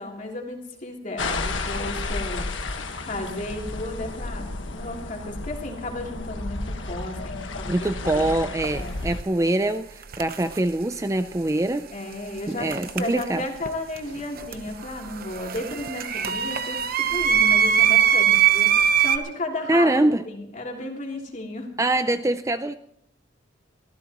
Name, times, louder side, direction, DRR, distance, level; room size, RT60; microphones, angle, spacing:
voice 1, 0.0-2.5 3.0-8.3 8.7-9.0 11.9-12.7 13.0-19.9 20.2-21.7, left 2 dB, 40° left, 0 dB, 3.1 m, -34 dB
sound 1, 1.2-9.2, left 3 dB, 80° left, 1.5 m, -32 dB
voice 2, 7.6-11.9 12.5-13.4 19.7-20.2 21.8-22.7, right 1 dB, 15° right, 10 dB, 0.5 m, -24 dB
sound 2, 8.6-8.8 10.0-10.6 12.7-13.7 14.0-19.2, right 9 dB, 50° right, 0.9 m, -22 dB
24.0 x 14.5 x 3.0 m, 0.71 s
head